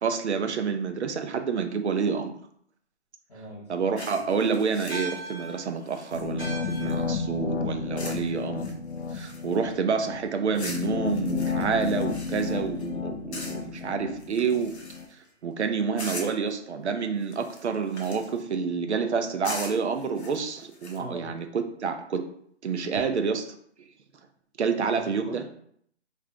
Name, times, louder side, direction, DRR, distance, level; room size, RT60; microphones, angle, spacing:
voice 1, 0.0-2.4 3.7-8.7 9.1-14.8 15.4-22.2 22.6-23.5 24.6-25.4, right 5 dB, 70° right, 7 dB, 0.6 m, -28 dB
voice 2, 3.3-3.7 9.8-9.9 21.0-21.3 24.8-25.5, equal, 35° left, -3 dB, 0.9 m, -42 dB
sound 1, 4.0-7.2 8.0-8.3 8.6-9.7 10.5-12.9 13.3-13.8 14.2-15.3 16.0-16.5 17.2-18.4 19.4-21.0, left 2 dB, 65° left, 1.0 m, -42 dB
sound 2, 4.9-9.6, right 2 dB, 10° right, 1.0 m, -42 dB
sound 3, 6.1-15.0, left 5 dB, 80° left, 0.6 m, -32 dB
3.7 x 2.5 x 3.3 m, 0.66 s
hypercardioid pair, 175°, 36 cm